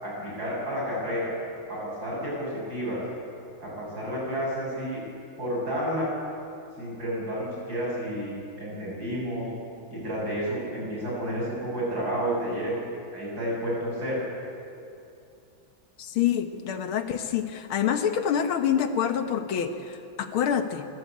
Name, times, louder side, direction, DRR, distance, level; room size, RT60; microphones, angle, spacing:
voice 1, 0.0-1.3 1.7-3.0 3.6-5.0 5.4-6.1 6.8-9.5 9.9-14.2, equal, 50° right, -5 dB, 8.2 m, -31 dB
voice 2, 16.0-20.9, left 8 dB, 85° left, 8 dB, 2.0 m, -26 dB
26.0 x 13.0 x 8.6 m, 2.6 s
omnidirectional pair, 2.2 m